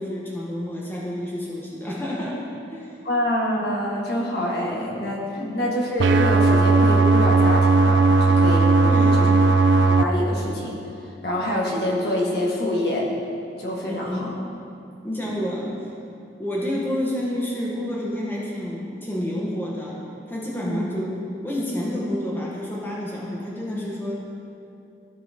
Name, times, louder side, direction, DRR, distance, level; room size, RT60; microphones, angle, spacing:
voice 1, 0.0-2.9 5.4-5.5 8.8-9.3 13.8-14.4 15.0-15.7 16.4-20.0 20.3-21.2 21.4-24.2, left 1 dB, 10° left, -5 dB, 1.0 m, -29 dB
voice 2, 3.0-8.7 9.2-9.3 9.8-10.8 11.2-13.1 13.6-14.3 15.2-15.4 20.5-20.8, equal, 60° left, -3 dB, 1.5 m, -26 dB
sound 1, 6.0-10.0, right 3 dB, 80° right, 0.4 m, -16 dB
14.5 x 5.5 x 2.8 m, 2.6 s
head